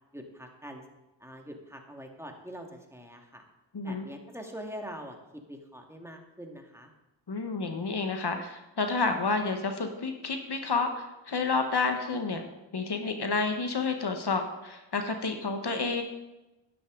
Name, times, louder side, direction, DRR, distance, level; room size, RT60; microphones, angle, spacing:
voice 1, 0.1-0.8 1.2-3.4 3.8-6.9, equal, 5° right, 2 dB, 1.9 m, -44 dB
voice 2, 3.7-4.0 7.3-12.4 12.7-16.0, left 4 dB, 60° left, 5 dB, 1.3 m, -30 dB
11.0 x 10.5 x 3.9 m, 0.99 s
cardioid pair, 50°, 45 cm